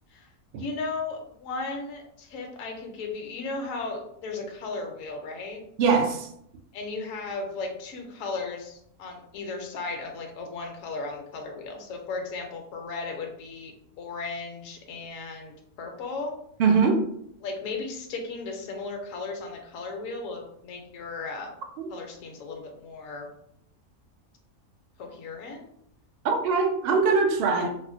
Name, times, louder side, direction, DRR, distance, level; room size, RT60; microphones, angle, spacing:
voice 1, 0.6-5.6 6.7-16.4 17.4-21.5 21.9-23.3 25.0-25.7 27.6-27.7, left 3 dB, 70° left, 1.0 m, -36 dB
voice 2, 5.8-6.3 16.6-17.1 21.8-21.9 26.2-27.7, right 4 dB, 75° right, 0.5 m, -22 dB
4.2 x 2.1 x 2.5 m
omnidirectional pair, 1.5 m